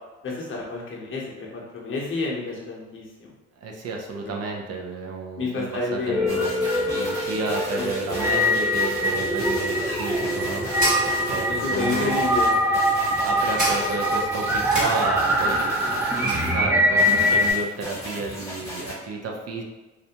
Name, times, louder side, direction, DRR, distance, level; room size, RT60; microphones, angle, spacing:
voice 1, 0.2-3.3 4.2-4.4 5.4-6.3 7.8-8.2 11.3-11.4 11.6-12.5, left 3 dB, 45° left, -3 dB, 0.8 m, -30 dB
voice 2, 3.6-6.5 6.9-10.6 11.2-12.2 13.2-19.6, right 3 dB, 55° right, 1 dB, 0.6 m, -31 dB
sound 1, 6.0-17.5, equal, 5° right, 0.3 m, -23 dB
sound 2, 6.3-16.5 17.0-18.9, equal, 10° left, 0.9 m, -35 dB
sound 3, 10.1-16.5, right 1 dB, 25° right, 1.2 m, -33 dB
2.4 x 2.1 x 2.8 m, 1.2 s
cardioid pair, 90°, 30 cm